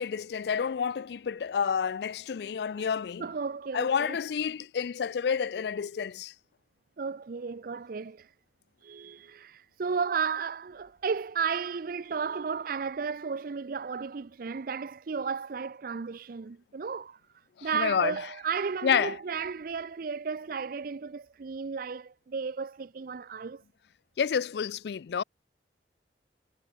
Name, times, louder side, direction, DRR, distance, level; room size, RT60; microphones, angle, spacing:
voice 1, 0.0-3.3 3.7-6.3 17.6-18.2 18.8-19.2 24.2-25.2, left 7 dB, 65° left, 0.4 m, -29 dB
voice 2, 3.2-4.2 7.0-8.3 8.8-17.2 17.6-23.6, right 5 dB, 55° right, 0.5 m, -34 dB
head